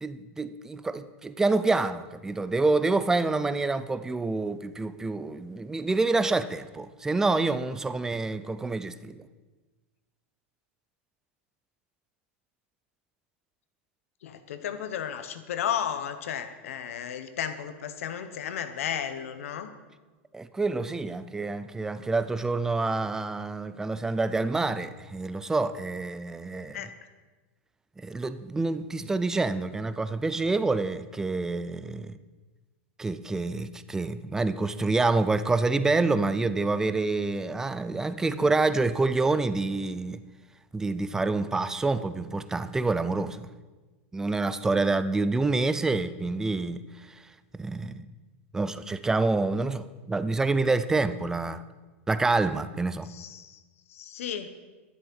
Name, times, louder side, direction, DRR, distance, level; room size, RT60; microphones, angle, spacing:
voice 1, 0.0-9.3 20.3-26.8 28.0-32.1 33.0-40.2 40.7-43.4 44.1-46.8 47.5-48.1 48.5-51.6 52.1-53.1, right 3 dB, 5° right, 0.4 m, -27 dB
voice 2, 14.2-19.7 26.7-26.9 53.1-53.6 53.9-54.5, left 9 dB, 80° left, 1.3 m, -33 dB
11.5 x 11.0 x 5.6 m
supercardioid pair, 150°, 7 cm